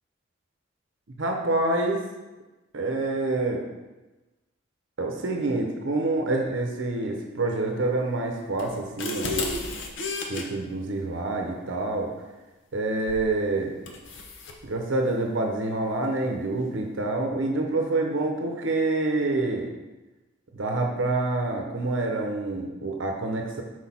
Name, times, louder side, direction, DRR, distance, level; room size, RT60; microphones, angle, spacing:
voice 1, 1.2-2.0 2.7-3.6 5.0-9.5 10.3-12.1 12.7-13.7 14.6-19.7 20.6-23.6, right 2 dB, 70° right, 2 dB, 0.8 m, -27 dB
sound 1, 8.6-10.4 13.1-13.3 13.9-14.6, left 2 dB, 65° left, 0.8 m, -32 dB
6.2 x 4.6 x 4.3 m, 1.1 s
head